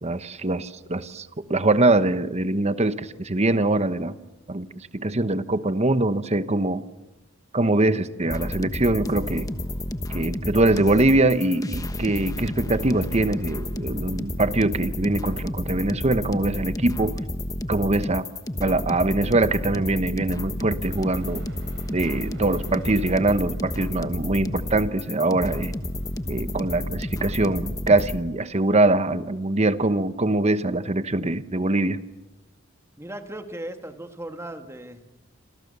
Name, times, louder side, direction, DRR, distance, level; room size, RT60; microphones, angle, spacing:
voice 1, 0.0-4.2 4.5-6.8 7.5-9.5 10.1-17.2 17.7-18.3 18.6-21.4 21.9-25.7 26.3-32.0, right 2 dB, 30° right, 12 dB, 1.1 m, -23 dB
sound 1, 8.2-28.2, left 1 dB, 15° left, 1.2 m, -31 dB
sound 2, 20.8-27.3, right 2 dB, 60° right, 6.5 m, -51 dB
voice 2, 33.0-35.0, right 1 dB, 15° right, 6 dB, 2.1 m, -37 dB
28.0 x 27.5 x 6.8 m, 1.0 s
head